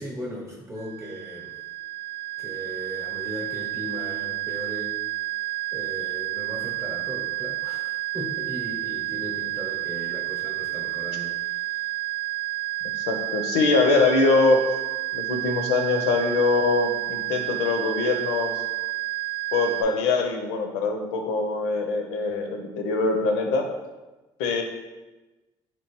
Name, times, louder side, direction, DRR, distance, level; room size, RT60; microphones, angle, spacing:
voice 1, 0.0-1.6 2.4-5.0 5.7-11.9, equal, 25° right, -3 dB, 0.7 m, -37 dB
sound 1, 0.8-19.8, right 18 dB, 60° right, 0.4 m, -30 dB
voice 2, 13.0-14.7 15.1-18.6 19.5-23.7 24.4-24.6, left 3 dB, 85° left, 4 dB, 0.5 m, -23 dB
3.0 x 3.0 x 2.9 m, 1.1 s
supercardioid pair, 75°, 11 cm